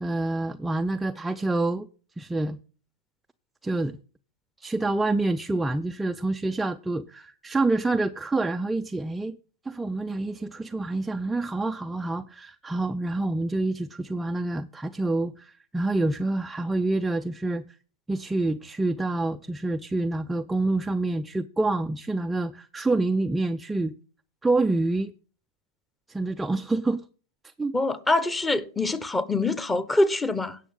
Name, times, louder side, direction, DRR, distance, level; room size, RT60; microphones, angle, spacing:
voice 1, 0.0-1.9 2.2-2.6 3.6-4.0 4.6-9.4 9.7-17.6 18.1-23.9 24.4-25.1 26.1-27.0 27.6-27.8, right 2 dB, 10° right, 0.4 m, -27 dB
voice 2, 27.7-30.6, left 2 dB, 10° left, 1.0 m, -24 dB
16.5 x 6.3 x 3.6 m
hypercardioid pair, 120°, 0 cm